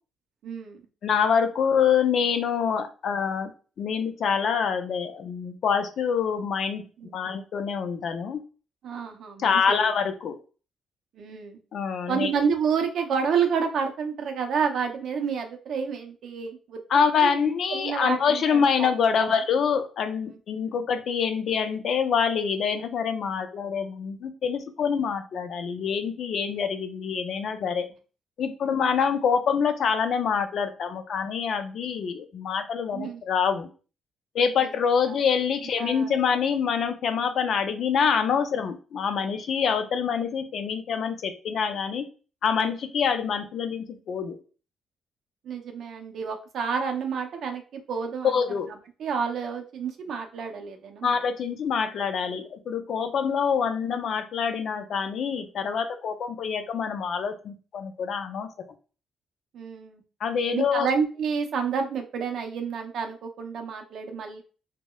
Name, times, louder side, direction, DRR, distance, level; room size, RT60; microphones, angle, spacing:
voice 1, 0.4-0.8 7.0-7.4 8.8-9.9 11.1-11.6 12.1-16.8 17.2-17.4 17.7-18.9 19.2-19.4 20.3-20.4 32.9-33.2 34.6-34.7 35.1-35.2 35.8-36.2 45.4-48.4 49.0-51.2 52.2-52.3 59.5-60.0 60.5-64.4, right 6 dB, 70° right, 4 dB, 0.5 m, -29 dB
voice 2, 1.0-3.5 3.8-6.8 7.1-8.4 9.4-10.4 11.7-12.3 16.9-27.9 28.4-33.7 34.3-42.1 42.4-44.4 48.3-48.7 51.0-58.5 60.2-60.9, left 6 dB, 65° left, 9 dB, 0.4 m, -26 dB
2.8 x 2.1 x 2.2 m, 0.36 s
cardioid pair, 90°, 0 cm